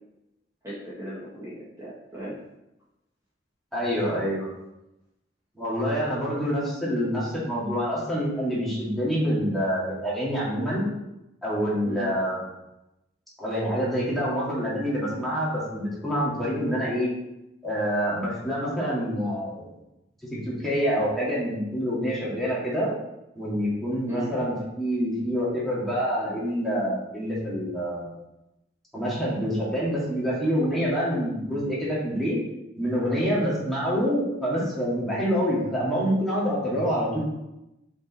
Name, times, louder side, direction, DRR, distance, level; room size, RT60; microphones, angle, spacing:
voice 1, 0.6-2.3 11.8-12.1 24.1-24.3, equal, 15° right, -10 dB, 1.6 m, -36 dB
voice 2, 3.7-4.5 5.6-10.8 11.4-12.4 13.4-17.1 17.6-19.7 20.4-22.9 23.4-28.2 28.9-32.4 32.8-37.2, equal, ahead, -8 dB, 2.2 m, -26 dB
5.5 x 5.1 x 4.1 m, 0.91 s
head